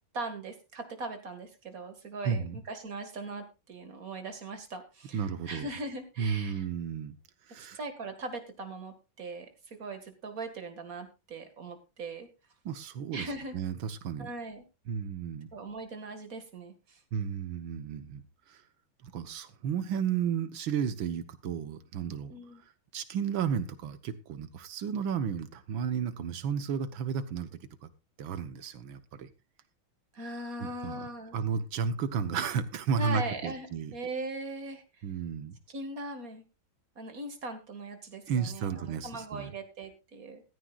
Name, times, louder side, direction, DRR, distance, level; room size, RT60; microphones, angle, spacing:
voice 1, 0.1-6.7 7.7-12.3 13.1-13.6 14.2-14.6 15.5-17.0 22.3-22.6 30.1-31.4 33.0-33.7 33.9-35.0 35.7-36.4 37.0-40.4, right 2 dB, 45° right, 2.4 m, -40 dB
voice 2, 2.3-2.6 5.1-5.7 6.2-7.2 7.5-7.8 12.7-13.3 13.5-14.3 14.9-15.5 17.1-18.2 18.5-18.6 19.0-22.3 22.9-27.5 27.8-27.9 28.2-29.3 30.6-31.0 31.3-33.9 35.0-35.6 38.3-39.5, right 7 dB, 75° right, 1.9 m, -33 dB
15.5 x 14.5 x 2.5 m
omnidirectional pair, 2.2 m